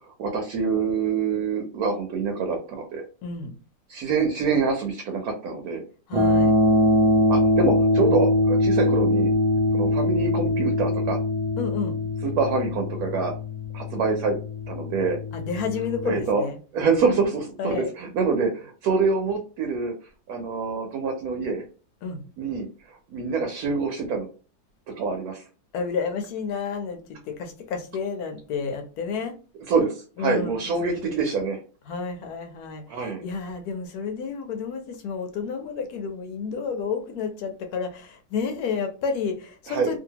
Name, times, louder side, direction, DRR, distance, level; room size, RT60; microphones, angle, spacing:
voice 1, 0.2-3.0 3.9-5.8 7.3-9.3 9.7-11.2 12.2-13.3 13.7-14.4 14.7-15.2 16.0-16.4 16.7-19.9 20.3-21.6 22.4-22.7 23.1-24.3 25.0-25.4 29.7-31.6 32.9-33.2 39.7-39.9, right 4 dB, 70° right, 1.1 m, -25 dB
voice 2, 3.2-3.5 6.1-6.5 11.6-12.0 15.3-16.6 16.9-17.1 17.6-17.9 22.0-22.2 25.7-29.3 30.2-31.1 31.9-40.0, left 5 dB, 70° left, 1.1 m, -31 dB
sound 1, 6.1-16.2, left 1 dB, 40° right, 0.5 m, -22 dB
2.7 x 2.6 x 2.8 m
omnidirectional pair, 1.7 m